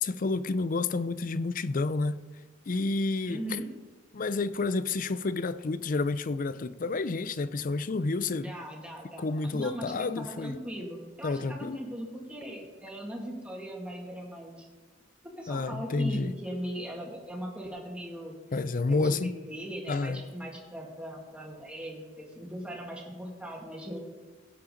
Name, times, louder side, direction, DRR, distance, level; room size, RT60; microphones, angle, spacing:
voice 1, 0.0-2.2 2.7-3.6 4.1-8.5 9.2-10.6 11.2-11.8 15.5-16.3 18.5-19.3 19.9-20.2, left 3 dB, 45° left, 0.5 m, -30 dB
voice 2, 3.2-3.7 8.4-9.3 9.5-14.7 15.4-18.4 18.9-24.0, right 1 dB, 5° right, 2.2 m, -39 dB
16.5 x 8.6 x 3.9 m
head